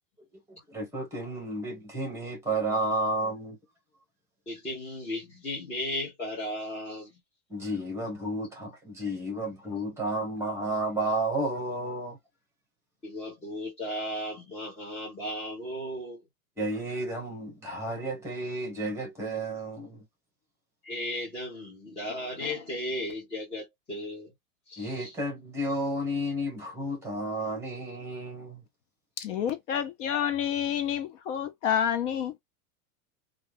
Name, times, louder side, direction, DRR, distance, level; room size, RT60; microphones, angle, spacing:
voice 1, 0.5-3.6 7.5-12.2 16.6-20.0 24.8-28.6, right 1 dB, 5° right, 1.1 m, -32 dB
voice 2, 4.5-7.1 13.0-16.2 20.8-24.3 24.7-25.1, left 1 dB, 15° left, 0.7 m, -35 dB
voice 3, 29.2-32.3, left 9 dB, 55° left, 0.6 m, -29 dB
2.4 x 2.2 x 3.3 m
supercardioid pair, 155°, 44 cm